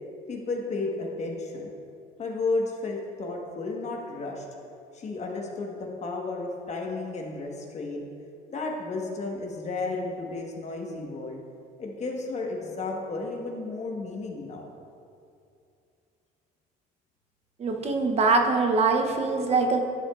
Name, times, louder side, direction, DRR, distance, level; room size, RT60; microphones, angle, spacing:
voice 1, 0.3-1.7 2.2-4.5 4.9-8.1 8.5-11.4 11.8-14.7, left 3 dB, 40° left, 0 dB, 1.3 m, -33 dB
voice 2, 17.6-19.8, right 3 dB, 40° right, 4 dB, 0.7 m, -23 dB
12.0 x 7.1 x 2.4 m, 2.5 s
cardioid pair, 110°, 17 cm